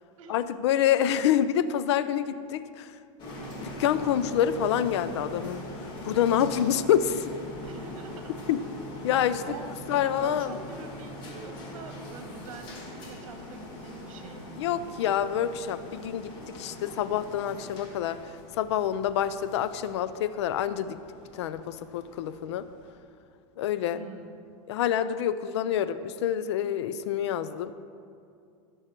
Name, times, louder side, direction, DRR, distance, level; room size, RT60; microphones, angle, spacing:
voice 1, 0.3-2.9 3.6-5.6 6.0-7.2 8.5-8.6 9.0-9.4 9.9-10.6 14.6-18.2 18.6-21.0 21.3-22.7 23.6-24.0 24.7-27.7, left 10 dB, 55° left, 14 dB, 0.4 m, -27 dB
sound 1, 3.2-22.9, equal, 25° left, 1.5 m, -42 dB
voice 2, 7.6-8.4 9.3-14.8 23.9-24.3, right 4 dB, 70° right, 4 dB, 1.7 m, -45 dB
15.5 x 6.4 x 4.4 m, 2.4 s
supercardioid pair, 175°, 17 cm